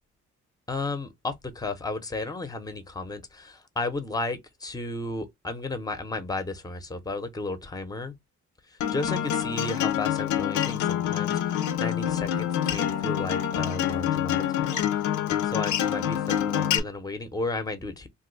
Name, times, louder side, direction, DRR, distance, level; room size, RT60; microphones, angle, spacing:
voice 1, 0.7-8.1 8.7-18.1, left 2 dB, 10° left, 0.7 m, -34 dB
Acoustic guitar, 8.8-16.8, left 10 dB, 75° left, 0.6 m, -26 dB
2.6 x 2.3 x 3.8 m
cardioid pair, 90°, 30 cm